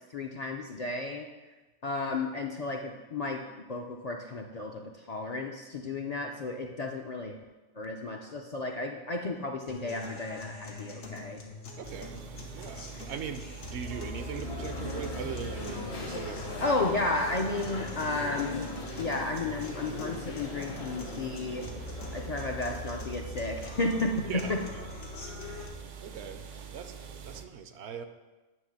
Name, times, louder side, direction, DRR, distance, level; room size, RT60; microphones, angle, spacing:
voice 1, 0.1-1.3 1.8-7.4 7.8-11.4 16.6-18.7 19.0-21.7 22.1-24.6, left 2 dB, 50° left, 1 dB, 0.5 m, -33 dB
sound 1, 9.7-25.7, left 2 dB, 85° left, 1.4 m, -43 dB
sound 2, 11.8-27.5, right 7 dB, 55° right, 0.5 m, -45 dB
voice 2, 11.8-12.2 12.5-16.8 24.3-25.4 26.0-28.0, right 7 dB, 75° right, 8 dB, 0.9 m, -41 dB
sound 3, 14.0-24.0, left 3 dB, 65° left, 1.4 m, -41 dB
9.1 x 3.3 x 6.4 m, 1.2 s
omnidirectional pair, 1.2 m